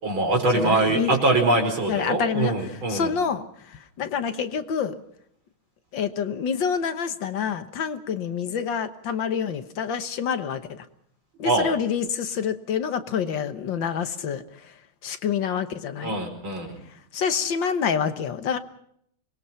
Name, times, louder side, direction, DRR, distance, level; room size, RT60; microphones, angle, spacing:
voice 1, 0.0-3.1 11.4-11.7 16.0-16.7, right 2 dB, 70° right, 2 dB, 5.6 m, -23 dB
voice 2, 0.5-1.2 1.9-5.0 5.9-10.9 11.4-14.7 15.0-16.2 17.1-18.6, left 7 dB, 65° left, 10 dB, 1.8 m, -27 dB
25.0 x 21.0 x 5.7 m, 0.71 s
omnidirectional pair, 2.3 m